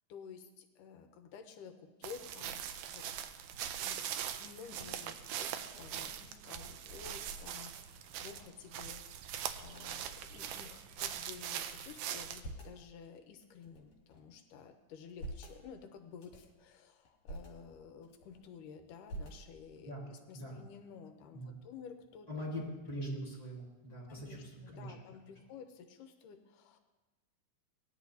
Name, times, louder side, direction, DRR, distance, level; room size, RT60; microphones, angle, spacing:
voice 1, 0.1-3.1 3.8-22.3 24.1-26.8, left 6 dB, 85° left, 6 dB, 2.4 m, -52 dB
sound 1, 2.0-12.4, right 9 dB, 80° right, 1.6 m, -42 dB
sound 2, 5.2-8.7 8.9-9.0 9.3-9.9 10.6-11.6 12.1-12.8 13.4-14.4 14.9-15.6 16.1-16.6 17.0-17.5 18.0-18.6 19.1-19.8, right 1 dB, 55° left, 3.3 m, -50 dB
voice 2, 22.3-24.9, equal, 10° left, -6 dB, 3.3 m, -42 dB
18.5 x 10.5 x 2.7 m, 1.2 s
omnidirectional pair, 3.6 m